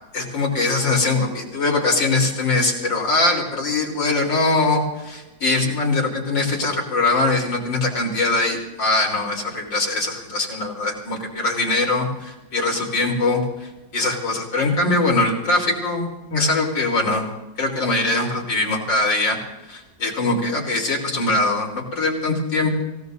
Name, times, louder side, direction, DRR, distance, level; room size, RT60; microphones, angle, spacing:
voice 1, 0.1-17.2 17.6-19.4 19.7-22.8, left 2 dB, 75° left, 0 dB, 4.4 m, -22 dB
28.0 x 16.5 x 2.7 m, 1.0 s
omnidirectional pair, 2.0 m